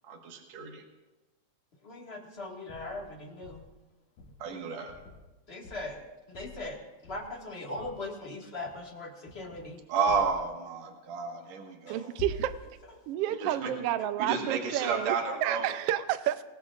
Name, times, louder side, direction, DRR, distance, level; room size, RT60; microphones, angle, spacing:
voice 1, 0.0-0.8 4.4-4.9 9.9-12.1 13.4-13.7 14.2-15.7, right 5 dB, 65° right, 2 dB, 2.7 m, -31 dB
voice 2, 1.8-3.6 5.5-9.8 11.9-12.0 13.0-13.1 14.0-14.1, left 2 dB, 25° left, 0 dB, 1.6 m, -40 dB
sound 1, 2.7-3.1 3.4-3.8 4.2-4.4 4.9-5.3 5.6-6.0 6.3-6.7 7.0-7.5 7.8-8.0 8.5-8.9 9.3-9.7 10.1-10.4 12.2-12.7, left 3 dB, 75° left, 2.8 m, -45 dB
voice 3, 11.9-12.6 13.1-16.4, right 12 dB, 85° right, 12 dB, 1.3 m, -30 dB
25.0 x 19.5 x 2.5 m, 1.1 s
omnidirectional pair, 3.4 m